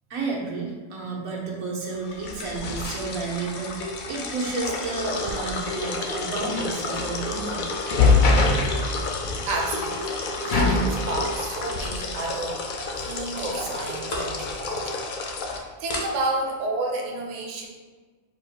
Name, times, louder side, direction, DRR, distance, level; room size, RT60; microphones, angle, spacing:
voice 1, 0.1-7.6, right 4 dB, 90° right, -2 dB, 1.3 m, -31 dB
sound 1, 2.0-15.6, left 3 dB, 70° left, 0.4 m, -26 dB
sound 2, 3.8-4.2 5.6-6.4 6.9-7.2 7.8-8.3 10.3-10.9 12.3-12.6 12.9-13.0 13.4-13.5 13.9-14.4 14.8-15.0 15.5-15.6 15.9-16.1, left 1 dB, 55° left, 1.1 m, -35 dB
voice 2, 9.5-10.1 10.4-12.7 13.0-15.0 15.5-17.7, right 2 dB, 45° right, 0 dB, 0.6 m, -30 dB
4.9 x 2.1 x 4.6 m, 1.4 s
omnidirectional pair, 1.4 m